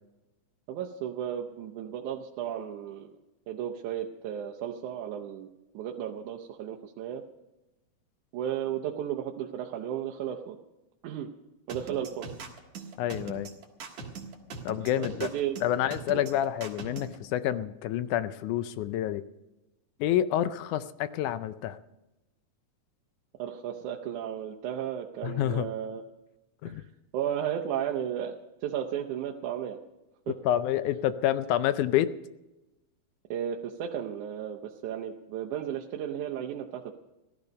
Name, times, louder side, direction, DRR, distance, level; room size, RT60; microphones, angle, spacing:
voice 1, 0.7-3.1 3.5-5.5 5.7-7.2 8.3-10.6 11.0-11.3 11.7-12.3 14.9-15.6 16.1-16.2 23.4-26.0 26.7-26.9 27.1-29.8 30.3-30.4 33.3-36.9, right 10 dB, 80° right, 0 dB, 2.2 m, -34 dB
sound 1, 11.7-17.2, right 5 dB, 60° right, 2.8 m, -40 dB
voice 2, 13.0-13.5 14.7-15.3 15.6-19.2 20.0-21.8 25.2-25.7 26.6-26.8 30.4-32.1, left 12 dB, 80° left, 13 dB, 2.1 m, -28 dB
16.0 x 12.5 x 5.3 m, 0.99 s
omnidirectional pair, 3.6 m